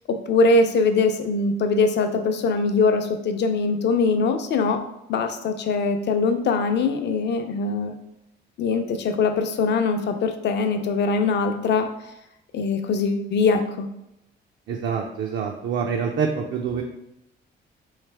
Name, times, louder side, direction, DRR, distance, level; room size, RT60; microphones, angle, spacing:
voice 1, 0.1-4.8 5.1-8.0 8.6-11.9 12.5-13.9, left 4 dB, 60° left, 7 dB, 0.5 m, -22 dB
voice 2, 14.7-16.8, right 6 dB, 65° right, 2 dB, 0.4 m, -26 dB
3.2 x 3.1 x 3.3 m, 0.84 s
cardioid pair, 90°, 20 cm